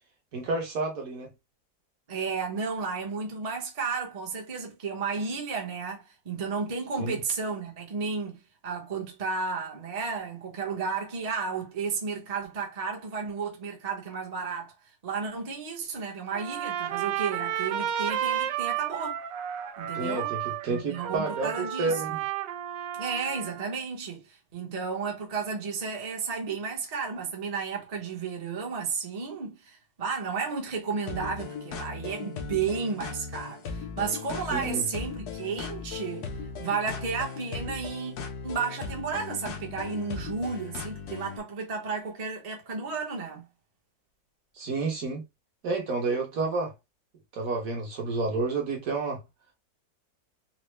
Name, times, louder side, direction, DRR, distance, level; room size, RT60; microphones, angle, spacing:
voice 1, 0.3-1.3 7.0-7.2 19.9-21.5 21.8-22.2 34.5-34.8 44.6-45.2 45.6-46.7 47.3-49.2, right 3 dB, 55° right, 1.3 m, -30 dB
voice 2, 2.1-14.7 15.0-19.2 19.8-20.3 20.7-22.2 23.0-36.3 36.6-38.1 38.4-43.4, right 5 dB, 35° right, 0.7 m, -33 dB
Trumpet, 16.3-23.7, right 10 dB, 80° right, 1.3 m, -32 dB
sound 1, 31.1-41.4, left 5 dB, 70° left, 1.2 m, -38 dB
4.1 x 2.1 x 3.1 m
omnidirectional pair, 2.0 m